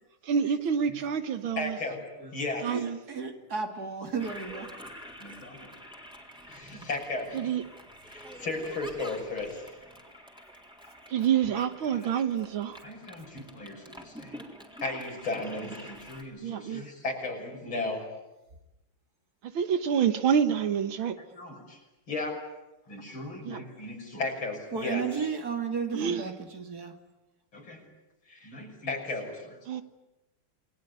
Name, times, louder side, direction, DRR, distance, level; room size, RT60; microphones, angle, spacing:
voice 1, 0.2-1.8 2.6-3.0 7.3-7.6 11.1-12.8 16.4-16.8 19.4-21.2 23.4-23.6 25.9-26.3 29.7-29.8, right 8 dB, 70° right, 2.1 m, -27 dB
voice 2, 1.6-2.7 5.2-5.7 6.5-7.5 8.1-9.8 11.9-12.1 12.8-14.4 14.8-18.1 21.3-21.8 22.1-22.4 22.9-25.0 27.5-27.8 28.3-29.6, left 2 dB, 70° left, 6.9 m, -35 dB
voice 3, 2.7-4.8 6.7-6.9 24.7-27.0, right 5 dB, 45° right, 2.7 m, -34 dB
Toilet flush, 4.2-16.2, equal, ahead, 3.8 m, -47 dB
28.5 x 21.5 x 9.5 m
omnidirectional pair, 2.3 m